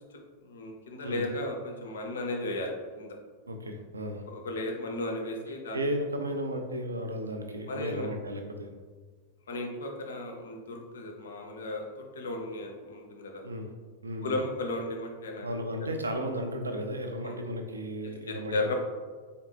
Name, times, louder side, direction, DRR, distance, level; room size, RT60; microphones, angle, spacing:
voice 1, 0.1-3.2 4.3-5.9 7.7-8.1 9.5-11.8 12.1-13.4 14.2-15.5 17.2-17.4 18.3-18.8, left 2 dB, 65° left, 2 dB, 0.5 m, -35 dB
voice 2, 3.5-4.2 5.7-8.7 13.4-13.7 14.0-14.4 15.4-18.8, equal, 75° right, 5 dB, 0.4 m, -34 dB
3.8 x 3.6 x 2.2 m, 1.5 s
figure-of-eight pair, 90°, 0 cm